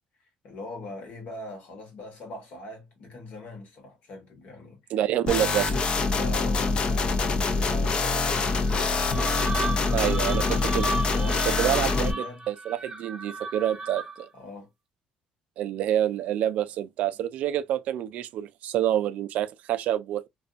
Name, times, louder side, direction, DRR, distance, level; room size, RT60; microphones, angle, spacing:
voice 1, 0.4-5.0 6.1-8.5 8.7-12.4 14.3-14.7, left 2 dB, 60° left, 1.4 m, -42 dB
voice 2, 4.9-5.7 9.9-10.4 10.7-10.9 11.5-14.3 15.6-20.3, right 11 dB, 65° right, 0.3 m, -27 dB
sound 1, 5.3-12.1, left 3 dB, 35° left, 0.5 m, -25 dB
sound 2, 8.7-14.4, right 2 dB, 20° right, 0.7 m, -35 dB
2.6 x 2.3 x 2.4 m
cardioid pair, 130°, 3 cm